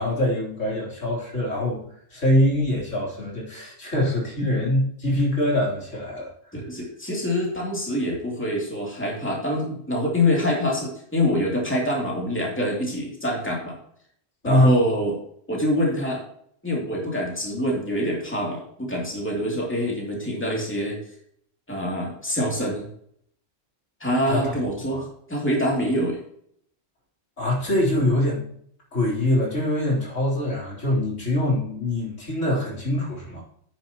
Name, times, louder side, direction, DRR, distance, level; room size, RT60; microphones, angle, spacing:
voice 1, 0.0-1.8 2.1-6.3 14.4-14.7 24.3-24.5 24.9-25.0 27.4-28.4 28.9-33.5, left 1 dB, 80° left, -4 dB, 4.0 m, -23 dB
voice 2, 6.5-13.8 14.4-15.2 15.5-16.2 16.6-21.0 21.7-22.9 24.0-25.0 25.3-26.2, equal, 10° left, -2 dB, 2.6 m, -25 dB
9.7 x 9.5 x 3.0 m, 0.66 s
omnidirectional pair, 1.3 m